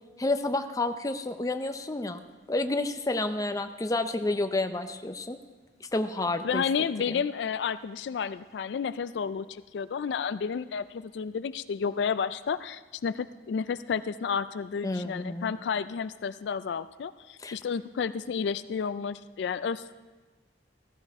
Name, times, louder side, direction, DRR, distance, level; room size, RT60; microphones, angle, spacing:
voice 1, 0.2-2.2 2.5-5.4 5.9-6.6 7.1-7.2 14.8-15.5 17.4-17.6, left 2 dB, 20° left, 8 dB, 0.6 m, -30 dB
voice 2, 6.4-19.9, left 6 dB, 75° left, 14 dB, 0.4 m, -31 dB
15.0 x 14.5 x 3.6 m, 1.3 s
head